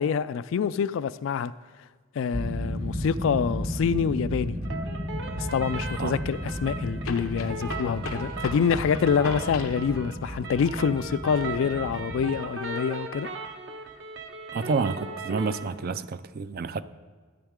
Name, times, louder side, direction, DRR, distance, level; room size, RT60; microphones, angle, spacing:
voice 1, 0.0-1.5 2.2-4.6 5.4-13.3, left 6 dB, 65° left, 0.3 m, -26 dB
sound 1, 2.3-12.4, equal, 30° right, 0.9 m, -34 dB
sound 2, 4.6-4.7 7.0-9.9, left 4 dB, 90° left, 0.7 m, -38 dB
sound 3, 4.6-15.7, right 3 dB, 65° right, 1.0 m, -38 dB
voice 2, 14.5-16.8, right 4 dB, 50° right, 0.4 m, -29 dB
13.0 x 8.9 x 3.7 m
head